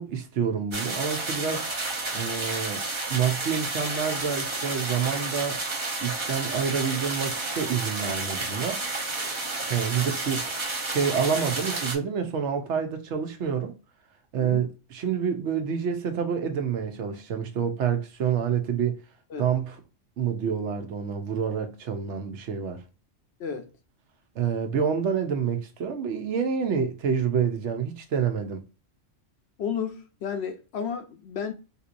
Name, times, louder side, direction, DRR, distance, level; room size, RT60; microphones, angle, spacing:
voice 1, 0.0-1.7 2.1-2.8 3.1-5.6 6.0-8.8 9.7-10.5 10.9-13.8 14.3-19.0 19.4-19.8 20.2-22.8 24.4-28.6, right 7 dB, 70° right, 0.9 m, -28 dB
sound 1, 0.7-12.0, right 2 dB, 30° right, 0.6 m, -31 dB
voice 2, 29.6-31.5, left 7 dB, 65° left, 0.8 m, -32 dB
3.6 x 2.8 x 2.5 m
omnidirectional pair, 1.3 m